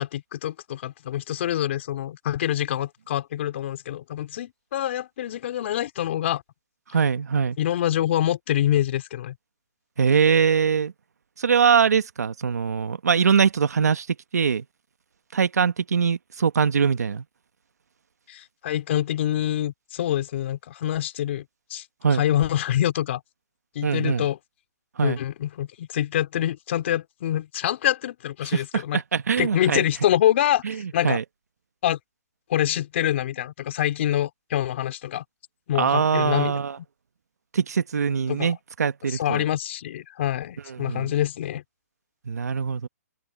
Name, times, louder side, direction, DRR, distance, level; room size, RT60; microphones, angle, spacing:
voice 1, 0.0-6.4 7.6-9.3 18.3-21.4 21.7-21.8 22.1-23.2 23.7-24.4 25.0-29.0 29.4-31.2 31.8-32.0 32.5-35.2 35.7-36.5 38.3-38.5 39.1-41.6, left 12 dB, 50° left, 3.4 m, -25 dB
voice 2, 6.9-7.6 10.0-10.9 11.4-14.1 14.3-14.6 15.3-17.2 22.0-22.2 23.8-24.3 25.0-25.2 28.4-29.8 30.6-31.2 35.7-36.8 37.5-39.4 40.7-41.1 42.2-42.9, right 6 dB, 80° right, 1.6 m, -22 dB
open air
hypercardioid pair, 155°, 9 cm